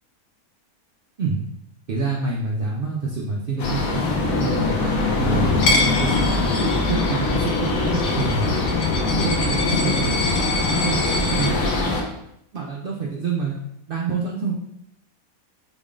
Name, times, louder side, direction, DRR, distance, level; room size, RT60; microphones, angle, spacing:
voice 1, 1.9-4.0 4.4-5.6 6.0-8.6 9.1-10.2 10.6-12.1 12.5-13.5 13.9-14.5, right 4 dB, 85° right, -2 dB, 0.4 m, -27 dB
sound 1, 3.6-12.0, left 3 dB, 75° left, 1.2 m, -22 dB
Coin (dropping), 5.6-11.5, left 2 dB, 60° left, 0.9 m, -27 dB
3.9 x 2.4 x 3.6 m, 0.79 s
omnidirectional pair, 1.5 m